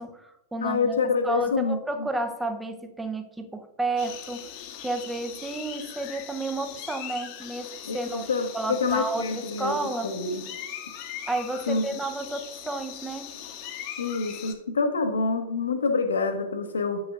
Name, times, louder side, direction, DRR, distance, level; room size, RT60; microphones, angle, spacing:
voice 1, 0.0-1.0 1.2-4.5 4.8-8.3 8.5-10.1 11.3-13.3, right 2 dB, 10° right, 7 dB, 0.6 m, -31 dB
voice 2, 0.6-1.8 7.9-9.8 10.0-10.4 11.7-11.8 14.0-17.0, left 4 dB, 75° left, 7 dB, 0.8 m, -26 dB
sound 1, 4.0-14.5, left 9 dB, 45° left, 0.9 m, -40 dB
8.0 x 6.3 x 2.4 m, 0.95 s
figure-of-eight pair, 100°, 0 cm